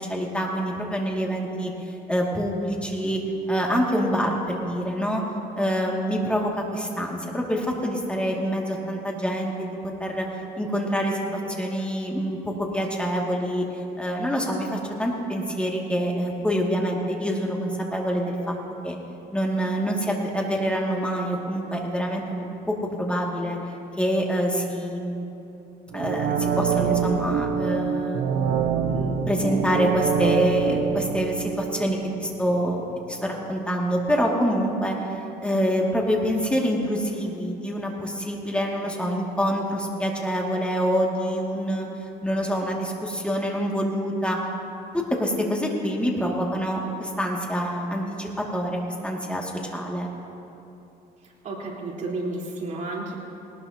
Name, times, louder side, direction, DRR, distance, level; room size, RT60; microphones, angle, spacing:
voice 1, 0.0-1.7 2.1-3.2 3.5-5.2 5.5-10.3 10.6-13.6 14.0-18.6 18.8-19.0 19.3-23.6 24.0-25.2 25.9-28.2 28.9-35.0 35.4-41.9 42.2-44.4 44.9-50.1, equal, 5° left, -1 dB, 2.2 m, -26 dB
sound 1, 25.9-32.7 33.1-33.2, right 7 dB, 80° right, 1.0 m, -26 dB
voice 2, 51.2-53.1, right 2 dB, 50° right, -4 dB, 4.0 m, -32 dB
19.5 x 19.0 x 2.9 m, 2.8 s
cardioid pair, 110°, 17 cm